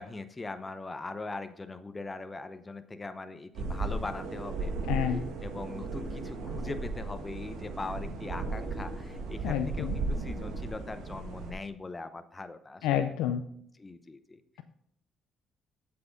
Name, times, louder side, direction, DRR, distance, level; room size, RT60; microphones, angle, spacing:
voice 1, 0.0-4.7 5.4-12.9 13.8-14.4, left 3 dB, 25° left, 10 dB, 0.8 m, -41 dB
sound 1, 3.6-11.5, right 3 dB, 85° right, 1.4 m, -35 dB
voice 2, 4.9-5.2 9.4-9.9 12.8-13.4, left 10 dB, 90° left, 8 dB, 0.5 m, -29 dB
7.8 x 5.8 x 5.1 m, 0.71 s
cardioid pair, 75°, 0 cm